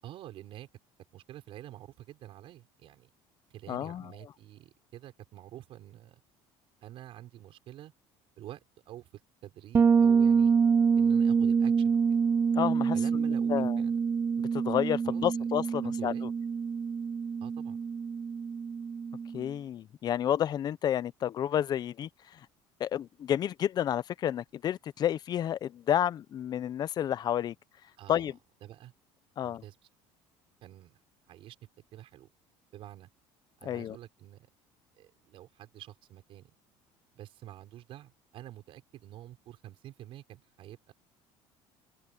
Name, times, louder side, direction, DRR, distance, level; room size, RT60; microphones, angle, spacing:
voice 1, 0.0-0.7 1.1-3.1 3.5-6.2 6.8-7.9 8.4-10.5 11.0-12.0 12.9-14.0 15.0-15.4 15.8-16.3 17.4-17.8 28.0-28.3 28.6-28.9 29.4-29.8 30.6-31.0 31.3-31.6 31.9-32.3 32.7-33.1 33.6-34.5 35.0-36.5 37.1-40.9, right 13 dB, 55° right, 6.0 m, -48 dB
voice 2, 3.7-4.1 12.6-13.2 13.5-13.8 14.5-16.3 19.3-22.1 22.8-27.5 28.1-28.4 29.4-29.6 33.6-34.0, left 10 dB, 40° left, 0.6 m, -30 dB
Bass guitar, 9.7-19.4, right 6 dB, 20° right, 0.3 m, -26 dB
open air
cardioid pair, 135°, 11 cm